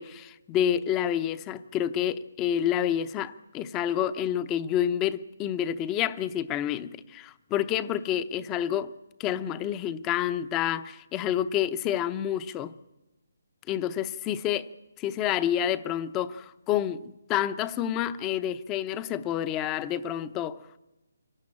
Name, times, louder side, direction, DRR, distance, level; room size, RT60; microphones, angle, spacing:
voice 1, 0.0-8.9 9.2-12.7 13.7-14.7 15.0-20.6, left 10 dB, 15° left, 0.7 m, -28 dB
24.5 x 18.0 x 8.7 m
hypercardioid pair, 165°, 0 cm